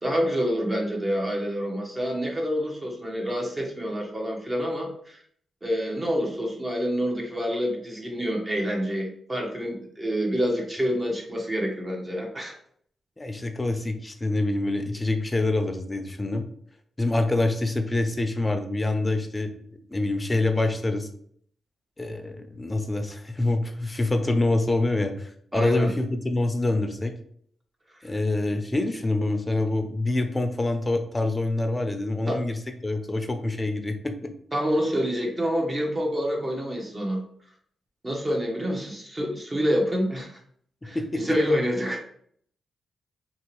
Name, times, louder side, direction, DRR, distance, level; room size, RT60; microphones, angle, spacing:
voice 1, 0.0-5.2 5.6-12.5 25.5-25.9 32.3-32.4 34.5-37.2 38.0-40.4 40.8-42.1, equal, 25° right, 0 dB, 0.9 m, -27 dB
voice 2, 13.2-16.5 17.0-19.6 19.9-21.1 22.0-27.1 28.0-32.6 32.8-34.3 40.9-41.4, left 2 dB, 20° left, 6 dB, 0.5 m, -26 dB
2.9 x 2.7 x 3.0 m, 0.63 s
cardioid pair, 65°, 0 cm